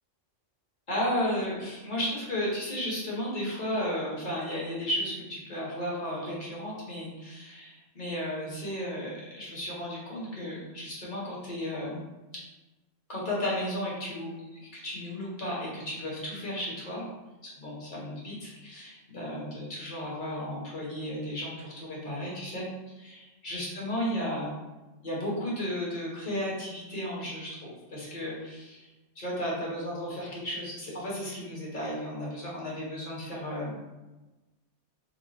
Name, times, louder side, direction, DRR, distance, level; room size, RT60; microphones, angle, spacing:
voice 1, 0.9-12.0 13.1-17.0 17.6-22.7 23.0-24.5 25.0-28.9 29.2-33.8, equal, 45° left, -5 dB, 1.1 m, -34 dB
3.0 x 2.2 x 3.9 m, 1.1 s
omnidirectional pair, 1.3 m